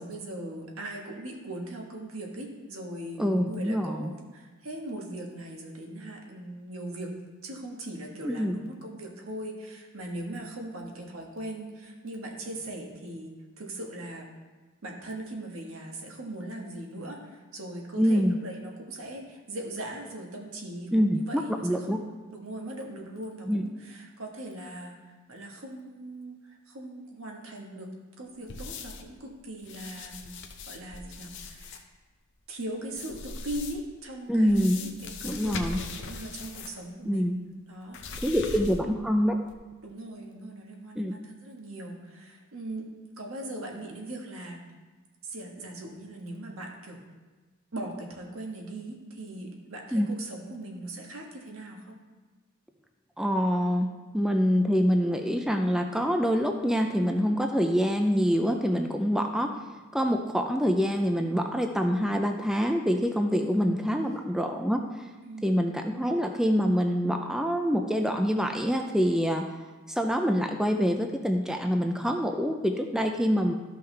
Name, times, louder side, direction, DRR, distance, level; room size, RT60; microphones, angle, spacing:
voice 1, 0.0-7.1 7.4-14.3 14.8-22.0 22.3-30.4 30.7-31.8 32.5-37.3 37.7-38.7 39.8-42.9 43.2-44.6 45.2-47.0 47.7-52.0 63.4-63.7 65.2-65.6, right 1 dB, 75° right, 0 dB, 1.4 m, -40 dB
voice 2, 3.2-4.1 8.2-8.6 18.0-18.4 20.9-22.0 23.5-23.6 34.3-34.8 35.2-35.8 37.1-37.4 38.2-39.4 41.0-41.1 49.9-50.1 53.2-53.9 54.1-59.5 59.9-65.1 65.4-69.5 69.9-73.5, equal, 5° right, 4 dB, 0.3 m, -25 dB
sound 1, 28.5-29.1 29.6-31.8 32.9-33.9 34.5-36.8 37.1-37.2 37.9-39.0 39.4-39.5, left 4 dB, 55° left, 0.7 m, -40 dB
12.5 x 5.6 x 3.3 m, 1.3 s
head